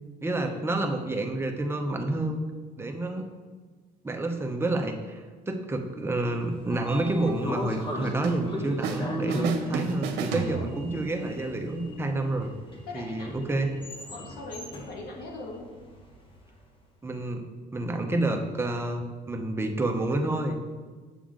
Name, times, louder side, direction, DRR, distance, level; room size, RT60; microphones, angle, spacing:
voice 1, 0.2-2.4 2.8-3.3 4.0-12.5 12.9-13.7 17.0-17.4 17.7-20.6, right 2 dB, 15° right, 3 dB, 0.9 m, -29 dB
Sliding door, 6.3-16.4, left 1 dB, 30° left, 1.6 m, -39 dB
voice 2, 7.9-8.2 10.3-10.7 12.8-13.7 14.1-15.7, left 2 dB, 65° left, -1 dB, 1.9 m, -41 dB
sound 1, 8.2-9.0 9.3-11.1, right 5 dB, 85° right, 0.8 m, -32 dB
7.1 x 7.0 x 3.8 m, 1.4 s
cardioid pair, 110°, 17 cm